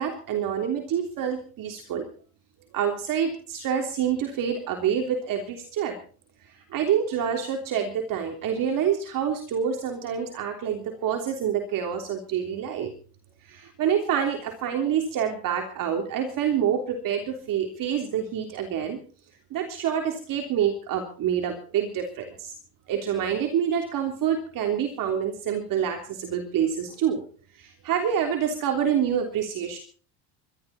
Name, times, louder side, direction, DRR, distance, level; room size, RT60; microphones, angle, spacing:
voice 1, 0.0-2.1 2.7-6.0 6.4-12.9 13.4-19.0 19.5-22.5 22.9-27.2 27.5-29.8, right 8 dB, 50° right, 3 dB, 3.4 m, -27 dB
23.5 x 13.0 x 4.3 m, 0.41 s
cardioid pair, 135°, 44 cm